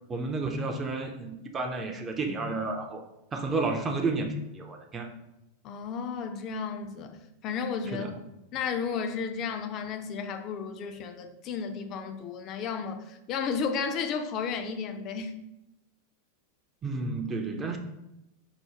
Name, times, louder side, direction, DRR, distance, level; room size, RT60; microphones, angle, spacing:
voice 1, 0.1-3.0 3.3-5.1 7.9-8.1 16.8-17.8, right 3 dB, 20° right, 3 dB, 0.5 m, -31 dB
voice 2, 5.6-8.1 8.5-15.3, left 6 dB, 35° left, 7 dB, 0.5 m, -33 dB
4.8 x 2.2 x 4.4 m, 0.89 s
figure-of-eight pair, 90°, 0 cm